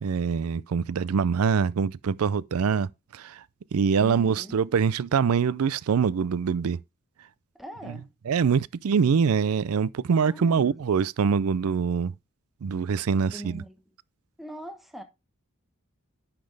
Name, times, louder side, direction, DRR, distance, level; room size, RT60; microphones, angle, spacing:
voice 1, 0.0-3.4 3.7-6.8 8.3-12.1 12.6-13.6, right 6 dB, 80° right, 0.4 m, -24 dB
voice 2, 4.0-4.6 7.6-8.1 10.2-10.7 13.3-13.7 14.4-15.0, equal, ahead, 1.2 m, -41 dB
10.5 x 5.9 x 3.3 m
head